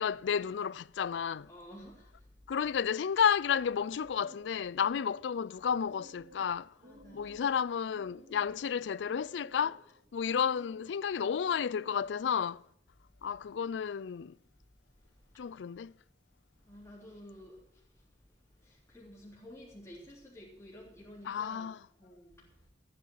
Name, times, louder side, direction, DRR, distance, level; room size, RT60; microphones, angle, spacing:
voice 1, 0.0-1.5 2.5-6.7 7.1-9.8 10.1-12.6 13.2-14.3 15.4-15.9 21.3-21.8, left 7 dB, 85° left, 0.4 m, -32 dB
voice 2, 1.5-2.3 6.8-7.4 15.1-15.4 16.6-18.0 18.5-21.7 22.0-22.7, equal, 15° left, 3.3 m, -52 dB
sound 1, 4.0-12.2, equal, 45° right, 3.6 m, -57 dB
14.0 x 9.5 x 6.4 m
head